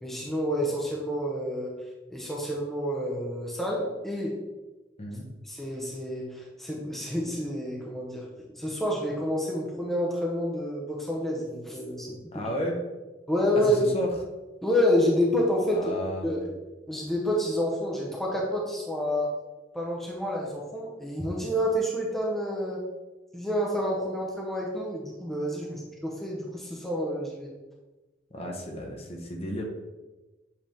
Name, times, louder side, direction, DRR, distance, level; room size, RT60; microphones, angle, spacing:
voice 1, 0.0-1.7 2.1-4.4 5.4-8.3 8.6-12.2 13.3-13.8 14.6-15.9 16.2-16.5 16.9-19.3 19.7-22.8 23.3-27.5, equal, ahead, -3 dB, 0.8 m, -28 dB
voice 2, 12.3-12.7 13.7-14.1 15.7-16.4 28.3-29.6, equal, 35° left, 0 dB, 0.9 m, -33 dB
7.7 x 3.5 x 3.5 m, 1.1 s
head